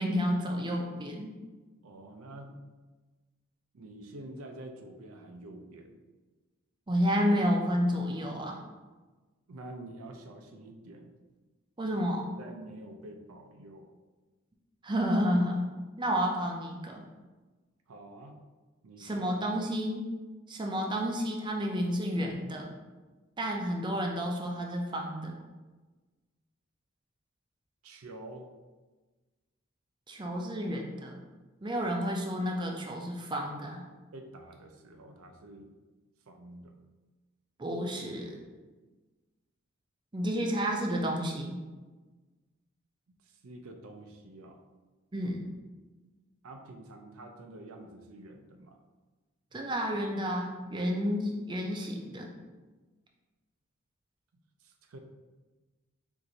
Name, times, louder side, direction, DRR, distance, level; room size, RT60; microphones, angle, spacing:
voice 1, 0.0-1.3 6.9-8.6 11.8-12.3 14.8-15.6 16.0-17.0 19.0-20.0 20.5-22.7 23.4-25.3 30.1-31.2 31.6-33.8 37.6-38.3 40.1-41.6 45.1-45.5 49.5-52.3, equal, 20° right, 0 dB, 0.5 m, -30 dB
voice 2, 1.8-2.6 3.7-6.0 9.5-11.1 11.9-12.0 12.4-13.9 17.9-18.4 18.8-19.5 27.8-28.5 34.1-35.7 36.3-36.7 40.3-40.4 43.2-44.6 46.4-48.8 54.6-55.0, right 1 dB, 85° right, 4 dB, 0.5 m, -47 dB
4.5 x 2.6 x 3.8 m, 1.3 s
head